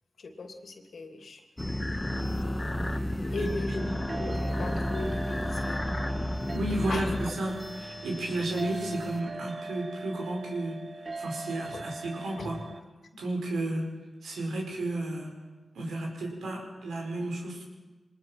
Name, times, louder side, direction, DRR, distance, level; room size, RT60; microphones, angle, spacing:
voice 1, 0.2-1.4 3.3-3.9 4.2-6.0 6.8-7.1 11.7-11.8 12.4-12.6, left 3 dB, 70° left, 5 dB, 2.8 m, -38 dB
sound 1, 1.6-9.2, left 1 dB, 20° left, 1.8 m, -32 dB
sound 2, 3.8-12.8, right 3 dB, 45° right, 1.6 m, -41 dB
voice 2, 6.5-12.6 13.1-13.9 14.2-15.3 15.7-17.6, right 1 dB, 90° right, 1 dB, 5.0 m, -33 dB
24.0 x 20.5 x 5.9 m, 1.2 s
cardioid pair, 45°, 0 cm